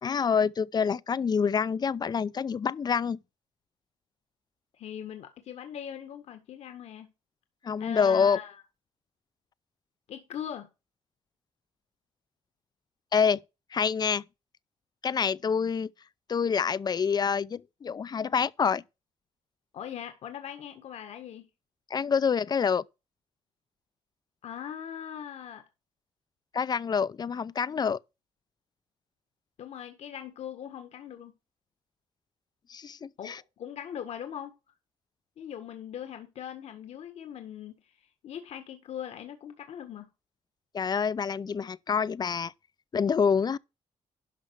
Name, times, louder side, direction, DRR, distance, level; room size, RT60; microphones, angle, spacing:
voice 1, 0.0-3.2 7.6-8.4 13.1-13.4 13.7-14.2 15.0-15.9 16.3-18.8 21.9-22.8 26.5-28.0 32.7-33.4 40.7-42.5 42.9-43.6, left 6 dB, 35° left, 0.5 m, -27 dB
voice 2, 4.8-7.1 7.8-8.6 10.1-10.7 19.7-21.5 24.4-25.6 29.6-31.3 33.2-34.6 35.4-40.1, left 9 dB, 70° left, 1.7 m, -40 dB
12.0 x 5.5 x 4.8 m
cardioid pair, 90°, 12 cm